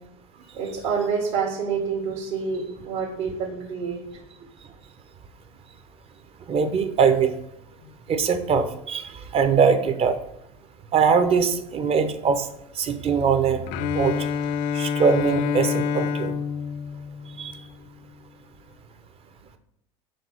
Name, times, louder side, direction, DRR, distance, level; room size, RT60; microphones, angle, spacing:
voice 1, 0.5-4.0, right 5 dB, 65° right, -4 dB, 1.8 m, -27 dB
voice 2, 6.5-7.3 8.1-10.2 10.9-12.5 12.8-13.6 13.9-14.1 14.7-16.3 17.4-17.5, right 6 dB, 35° right, 9 dB, 0.8 m, -21 dB
Bowed string instrument, 13.7-17.8, left 7 dB, 50° left, 0.4 m, -27 dB
5.2 x 3.6 x 5.7 m, 0.80 s
hypercardioid pair, 85°, 17 cm